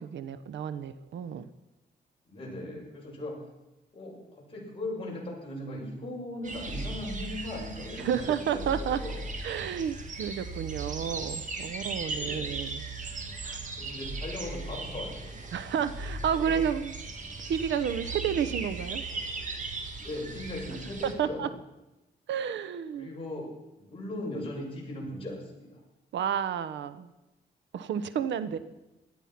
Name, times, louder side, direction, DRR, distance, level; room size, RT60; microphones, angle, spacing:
voice 1, 0.0-1.5 8.0-9.0 9.4-12.8 13.4-13.8 15.5-16.9 17.5-19.0 21.0-21.5 22.3-23.1 26.1-27.1 27.7-28.6, right 8 dB, 85° right, 14 dB, 0.9 m, -31 dB
voice 2, 2.2-3.4 3.9-9.3 12.2-12.6 13.8-15.3 16.3-16.6 18.2-18.5 20.0-21.5 23.0-23.5 23.8-25.8 28.5-28.6, left 1 dB, 30° left, -3 dB, 6.7 m, -38 dB
sound 1, 6.4-21.1, right 3 dB, 45° right, 2.3 m, -37 dB
18.0 x 12.5 x 5.9 m, 1.0 s
cardioid pair, 130°, 18 cm